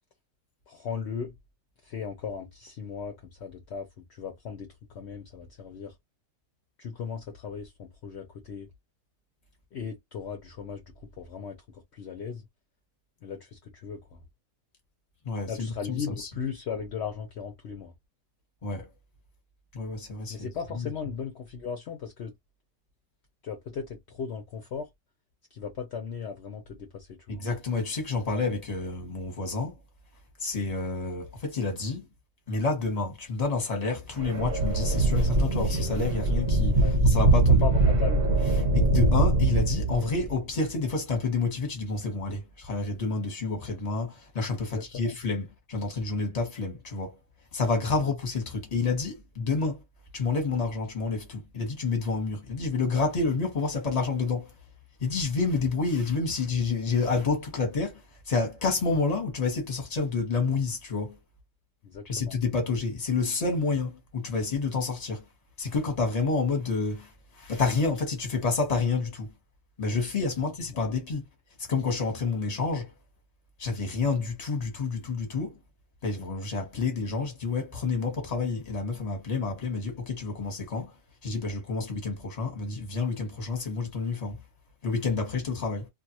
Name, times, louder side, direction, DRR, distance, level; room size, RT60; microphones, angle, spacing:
voice 1, 0.7-1.4 1.8-4.7 4.9-5.9 6.8-8.7 9.7-12.4 13.2-14.2 15.5-17.9 20.3-22.3 23.4-24.9 25.5-27.4 36.8-37.0 37.6-38.3 44.6-45.1 47.9-48.0 61.8-62.4, left 6 dB, 60° left, 0.7 m, -37 dB
voice 2, 15.2-16.3 18.6-18.9 19.7-20.5 20.7-20.9 27.3-29.8 30.4-32.0 32.5-37.6 38.7-47.1 47.5-49.8 50.1-54.5 55.0-61.2 62.0-65.2 65.6-67.1 67.4-69.3 69.8-71.2 71.7-72.9 73.6-75.6 76.0-80.9 81.2-84.4 84.8-85.9, left 4 dB, 25° left, 1.0 m, -29 dB
sound 1, 34.2-40.3, right 2 dB, 75° right, 0.4 m, -22 dB
2.6 x 2.4 x 2.8 m
omnidirectional pair, 1.8 m